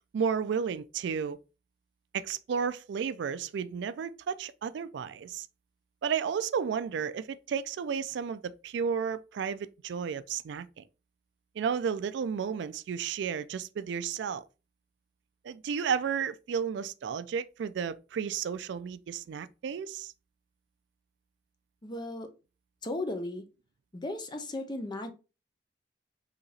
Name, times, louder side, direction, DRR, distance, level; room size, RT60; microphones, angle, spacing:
voice 1, 0.1-1.4 2.1-5.5 6.0-10.8 11.6-14.4 15.4-20.1, right 7 dB, 70° right, 0.3 m, -32 dB
voice 2, 21.8-22.3 22.8-23.4 23.9-25.1, left 2 dB, 25° left, 0.7 m, -35 dB
4.0 x 2.8 x 4.1 m
head